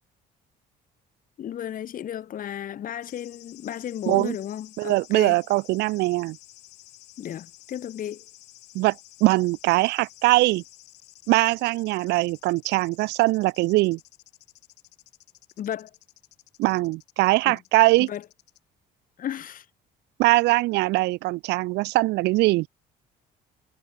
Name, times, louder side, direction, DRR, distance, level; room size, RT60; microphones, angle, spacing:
voice 1, 1.4-5.4 7.2-8.2 15.6-15.9 17.5-17.6 18.0-18.2 19.2-19.6, left 10 dB, 55° left, 3.3 m, -34 dB
sound 1, 3.0-18.6, left 18 dB, 85° left, 4.0 m, -52 dB
voice 2, 4.8-6.4 8.7-10.6 11.3-14.0 16.6-18.1 20.2-22.7, right 20 dB, 85° right, 0.6 m, -22 dB
cardioid pair, 110°, 17 cm